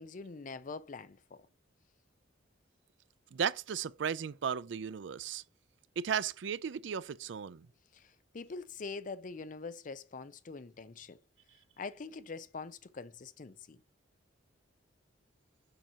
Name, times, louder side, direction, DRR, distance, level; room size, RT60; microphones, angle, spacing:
voice 1, 0.0-1.4 7.9-8.1 8.3-11.2 11.8-13.8, left 4 dB, 40° left, 0.5 m, -44 dB
voice 2, 3.3-5.4 6.0-7.7, right 7 dB, 65° right, 0.4 m, -35 dB
6.8 x 2.9 x 5.6 m
head